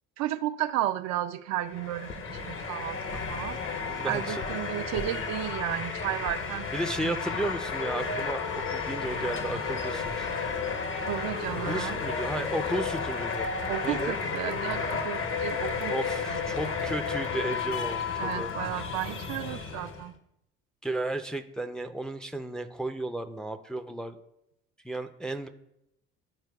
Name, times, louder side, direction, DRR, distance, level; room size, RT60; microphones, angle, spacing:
voice 1, 0.2-3.6 4.0-6.7 7.0-7.3 11.0-12.0 13.7-16.0 16.2-16.4 18.2-20.2, right 13 dB, 60° right, 0.4 m, -33 dB
sound 1, 1.6-20.1, left 5 dB, 45° left, 0.8 m, -32 dB
voice 2, 3.9-4.6 5.0-5.2 6.7-10.3 11.6-13.5 13.8-14.2 15.9-18.5 20.8-24.2 24.8-25.5, right 1 dB, ahead, 0.4 m, -34 dB
12.0 x 4.4 x 2.3 m
supercardioid pair, 85°, 30 cm